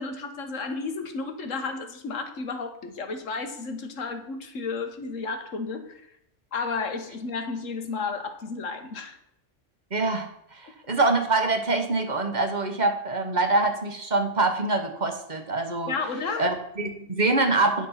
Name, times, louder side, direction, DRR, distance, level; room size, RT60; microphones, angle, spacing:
voice 1, 0.0-6.1 6.5-9.2 15.9-16.5, left 4 dB, 85° left, 7 dB, 1.6 m, -32 dB
voice 2, 9.9-15.9 16.4-17.9, right 3 dB, 35° right, 5 dB, 1.5 m, -25 dB
10.5 x 6.4 x 5.8 m, 0.79 s
omnidirectional pair, 1.3 m